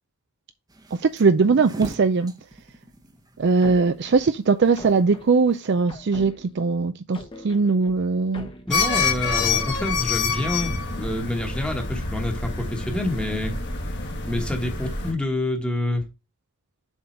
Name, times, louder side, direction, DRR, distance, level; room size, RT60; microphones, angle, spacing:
sound 1, 0.7-5.8, right 1 dB, 20° right, 0.8 m, -41 dB
voice 1, 1.0-2.3 3.4-7.2 7.4-8.5, right 4 dB, 55° right, 0.4 m, -20 dB
sound 2, 3.4-6.7 7.1-9.8, left 1 dB, 25° left, 1.0 m, -42 dB
sound 3, 8.7-15.1, left 4 dB, 55° left, 1.7 m, -27 dB
voice 2, 8.7-13.5 14.2-16.0, left 1 dB, 5° left, 1.2 m, -27 dB
7.2 x 3.9 x 4.4 m
head